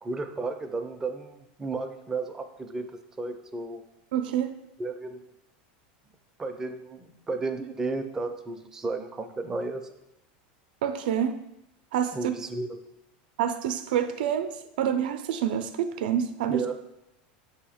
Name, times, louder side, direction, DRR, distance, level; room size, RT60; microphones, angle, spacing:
voice 1, 0.0-2.9 3.2-3.8 4.8-5.3 6.4-9.8 12.1-12.8 16.5-16.7, right 3 dB, 10° right, 6 dB, 0.4 m, -33 dB
voice 2, 4.1-4.5 10.8-11.3 11.9-12.3 13.4-14.5 14.8-16.6, right 9 dB, 85° right, 9 dB, 0.4 m, -27 dB
6.9 x 2.8 x 4.9 m, 0.86 s
supercardioid pair, 170°, 5 cm